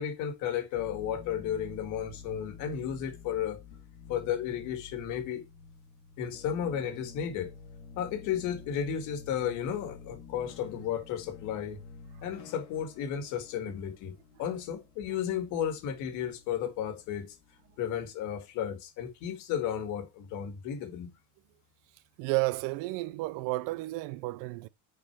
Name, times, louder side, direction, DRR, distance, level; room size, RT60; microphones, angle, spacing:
voice 1, 0.0-3.6 4.1-5.4 6.2-7.5 8.0-11.8 12.2-14.1 14.4-17.4 17.8-21.1, left 9 dB, 55° left, 1.8 m, -33 dB
sound 1, 0.7-18.1, left 5 dB, 85° left, 2.2 m, -50 dB
voice 2, 22.2-24.7, right 21 dB, 60° right, 0.5 m, -32 dB
6.3 x 4.6 x 4.7 m
cardioid pair, 150°, 36 cm